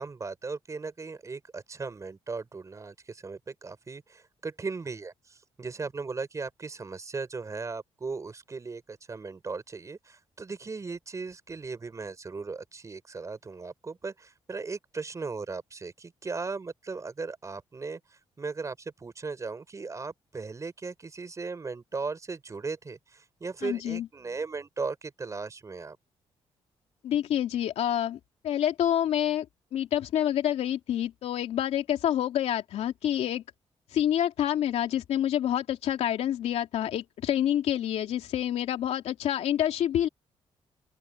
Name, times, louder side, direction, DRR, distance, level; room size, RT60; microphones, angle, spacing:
voice 1, 0.0-18.0 18.4-26.0, right 4 dB, 30° right, 5.3 m, -37 dB
voice 2, 23.6-24.1 27.0-28.2 28.4-29.5 29.7-33.4 33.9-40.1, left 11 dB, 80° left, 2.9 m, -27 dB
open air
cardioid pair, 110°, 11 cm